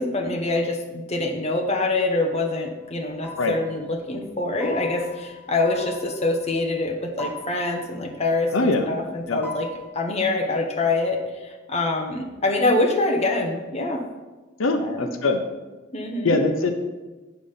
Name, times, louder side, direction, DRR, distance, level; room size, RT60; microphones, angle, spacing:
voice 1, 0.0-9.7 9.9-14.0 14.8-15.1 15.9-16.4, left 2 dB, 35° left, 2 dB, 0.9 m, -25 dB
sound 1, 2.8-6.9 7.2-8.8 9.2-9.9, left 2 dB, 10° left, 1.4 m, -40 dB
voice 2, 8.5-8.9 9.3-9.4 14.6-15.4 16.2-16.7, left 3 dB, 85° left, 6 dB, 0.7 m, -22 dB
8.4 x 5.2 x 5.6 m, 1.2 s
head